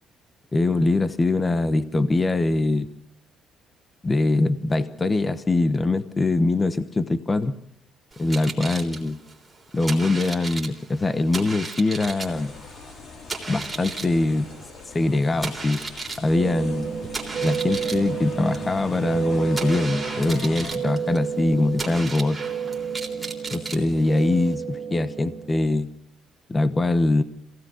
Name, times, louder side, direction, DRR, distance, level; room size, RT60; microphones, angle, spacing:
voice 1, 0.5-2.9 4.0-7.6 8.2-9.2 9.7-12.5 13.5-14.5 14.9-15.8 16.2-16.9 17.4-22.4 23.5-25.9 26.5-27.2, left 2 dB, 15° left, 13 dB, 1.0 m, -23 dB
sound 1, 8.1-24.5, right 3 dB, 5° right, 3.7 m, -36 dB
sound 2, 11.9-20.8, left 4 dB, 40° left, 3.0 m, -42 dB
sound 3, 16.3-25.7, right 7 dB, 30° right, 3.7 m, -31 dB
26.5 x 17.5 x 6.4 m, 0.68 s
cardioid pair, 175°, 0 cm